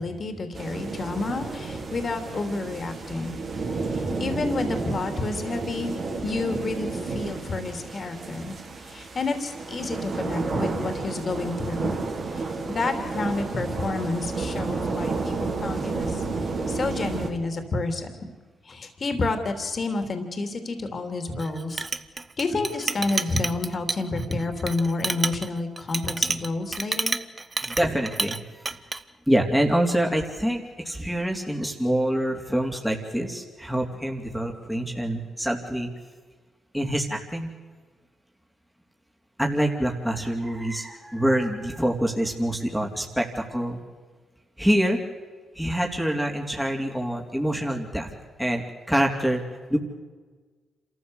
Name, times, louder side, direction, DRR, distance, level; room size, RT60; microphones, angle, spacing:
voice 1, 0.0-3.4 3.9-8.5 8.8-12.0 12.3-16.3 16.7-18.1 18.6-21.8 22.4-27.2, left 3 dB, 50° left, 7 dB, 3.2 m, -29 dB
sound 1, 0.5-17.3, right 3 dB, 60° right, 4.2 m, -31 dB
Chink clink, 21.4-28.4 28.7-29.0, right 3 dB, 35° right, 1.1 m, -29 dB
voice 2, 27.6-28.8 29.3-35.9 36.7-37.5 39.4-43.8 44.6-45.0 45.6-48.1 48.4-49.4 49.7-49.8, right 1 dB, 5° right, 1 dB, 3.4 m, -26 dB
27.0 x 14.0 x 8.2 m, 1.4 s
supercardioid pair, 55°, 0 cm